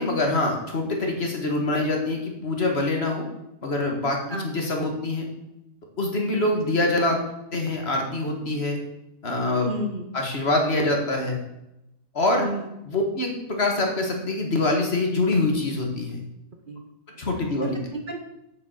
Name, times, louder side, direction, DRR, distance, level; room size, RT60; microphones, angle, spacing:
voice 1, 0.0-3.2 3.6-4.2 4.4-5.3 6.0-7.2 7.5-8.8 9.2-9.7 10.1-11.4 12.1-12.5 12.9-16.2 17.2-17.9, left 2 dB, 50° left, 1 dB, 2.0 m, -24 dB
voice 2, 9.7-10.1 12.3-12.7 16.7-16.8 17.9-18.3, right 1 dB, 40° right, 4 dB, 1.0 m, -31 dB
7.1 x 7.0 x 6.6 m, 0.88 s
omnidirectional pair, 1.4 m